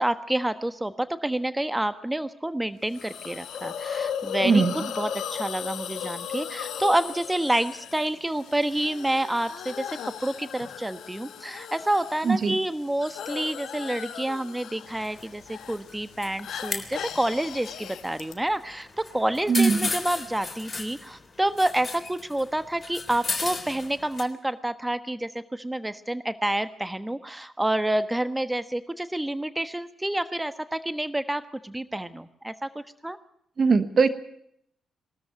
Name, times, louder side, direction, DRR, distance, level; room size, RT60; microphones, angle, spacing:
voice 1, 0.0-33.2, right 1 dB, 10° right, 12 dB, 1.3 m, -28 dB
Hiss, 2.9-18.3, left 8 dB, 65° left, 1.3 m, -37 dB
voice 2, 4.4-4.7 12.2-12.5 19.5-19.9 33.6-34.1, right 5 dB, 45° right, 12 dB, 1.2 m, -20 dB
sound 1, 14.9-24.2, left 4 dB, 35° left, 3.7 m, -36 dB
21.0 x 13.5 x 9.2 m, 0.72 s
hypercardioid pair, 40°, 0 cm